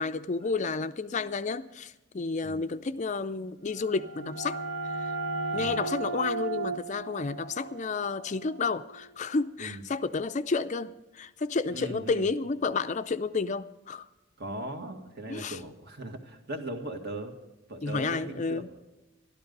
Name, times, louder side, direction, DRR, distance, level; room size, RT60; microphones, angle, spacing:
voice 1, 0.0-4.6 5.0-5.1 5.5-14.1 15.3-15.6 17.8-18.7, left 4 dB, 35° left, 0.4 m, -31 dB
sound 1, 3.7-9.2, right 3 dB, 80° right, 1.6 m, -36 dB
voice 2, 11.7-12.3 14.4-17.4 17.7-18.8, right 2 dB, 55° right, 2.0 m, -39 dB
13.0 x 12.5 x 5.3 m
head